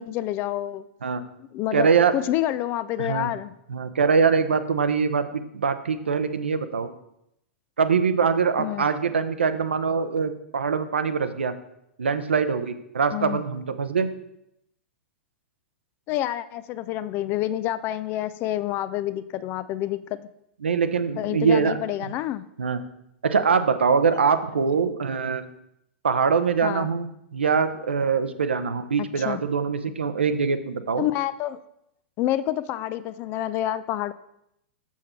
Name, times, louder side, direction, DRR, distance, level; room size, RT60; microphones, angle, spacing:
voice 1, 0.0-0.8 1.2-3.5 8.6-8.9 13.1-13.4 16.1-20.2 21.2-22.4 26.6-26.9 29.0-29.4 31.0-31.6 32.2-34.1, left 13 dB, 35° left, 15 dB, 0.4 m, -28 dB
voice 2, 1.7-2.1 3.0-3.3 3.7-6.9 7.8-11.5 12.0-14.1 20.6-21.7 22.6-22.8 23.2-25.4 26.0-31.0, right 5 dB, 75° right, 10 dB, 0.7 m, -23 dB
7.2 x 7.2 x 4.3 m, 0.80 s
figure-of-eight pair, 100°, 6 cm